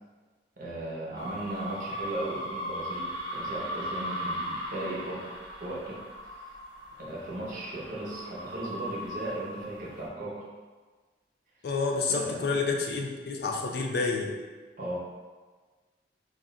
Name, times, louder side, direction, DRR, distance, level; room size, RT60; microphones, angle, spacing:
voice 1, 0.6-5.3 5.6-6.0 7.0-10.5 12.1-12.6 14.8-15.0, right 1 dB, 50° right, -5 dB, 0.6 m, -37 dB
sound 1, 1.2-10.0, equal, 85° right, 0.8 m, -38 dB
voice 2, 11.6-14.3, left 4 dB, 60° left, 0 dB, 0.3 m, -29 dB
2.3 x 2.1 x 3.6 m, 1.4 s
head